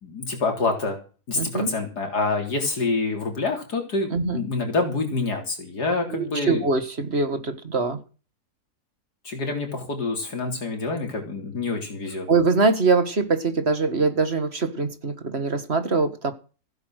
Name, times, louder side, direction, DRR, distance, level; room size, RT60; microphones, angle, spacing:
voice 1, 0.0-1.0 1.3-6.7 9.2-12.3, left 3 dB, 85° left, 3 dB, 4.2 m, -27 dB
voice 2, 1.4-1.7 4.1-4.4 6.1-8.0 12.3-16.3, right 4 dB, 40° right, 10 dB, 2.0 m, -23 dB
15.5 x 9.4 x 6.5 m, 0.35 s
omnidirectional pair, 1.7 m